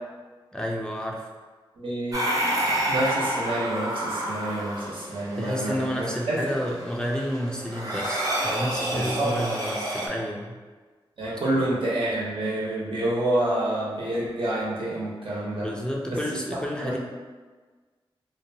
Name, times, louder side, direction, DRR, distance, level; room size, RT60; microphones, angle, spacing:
voice 1, 0.5-1.3 5.4-10.6 15.6-17.0, equal, 10° left, -1 dB, 0.3 m, -30 dB
voice 2, 1.8-2.3 2.9-6.4 8.9-9.3 11.2-15.7 16.1-16.4 16.8-17.0, right 1 dB, 70° right, -6 dB, 0.8 m, -28 dB
sound 1, 2.1-10.1, right 1 dB, 40° right, 0.6 m, -29 dB
2.7 x 2.2 x 2.7 m, 1.4 s
wide cardioid pair, 65°, 9 cm